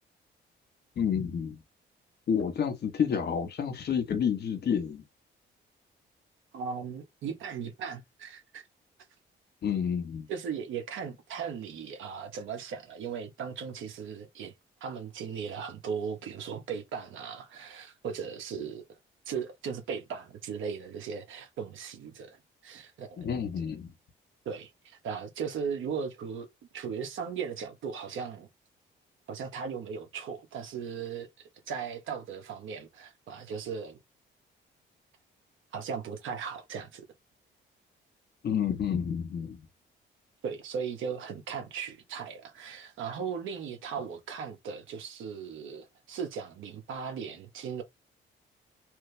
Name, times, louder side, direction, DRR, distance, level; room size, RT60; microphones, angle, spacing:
voice 1, 1.0-1.6 2.3-5.0 9.6-10.3 23.2-23.9 38.4-39.6, left 7 dB, 55° left, 1.1 m, -29 dB
voice 2, 6.5-8.6 10.3-14.5 14.8-18.8 19.2-22.4 22.6-23.3 24.4-26.5 26.7-28.5 29.3-34.0 35.7-37.0 40.4-47.8, right 6 dB, 80° right, 1.3 m, -37 dB
3.2 x 2.9 x 3.3 m
cardioid pair, 90°, 20 cm